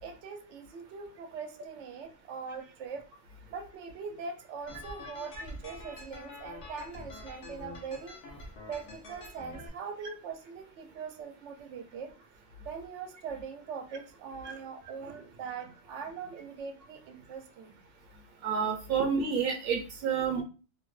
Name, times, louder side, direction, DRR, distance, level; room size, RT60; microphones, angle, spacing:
voice 1, 0.0-3.0 3.5-8.2 8.7-12.1 12.6-17.7, right 5 dB, 85° right, 7 dB, 0.9 m, -42 dB
sound 1, 4.7-9.7, left 2 dB, 75° left, 1.0 m, -46 dB
voice 2, 18.4-20.4, right 6 dB, 60° right, 3 dB, 0.9 m, -29 dB
2.8 x 2.0 x 3.1 m, 0.34 s
omnidirectional pair, 1.2 m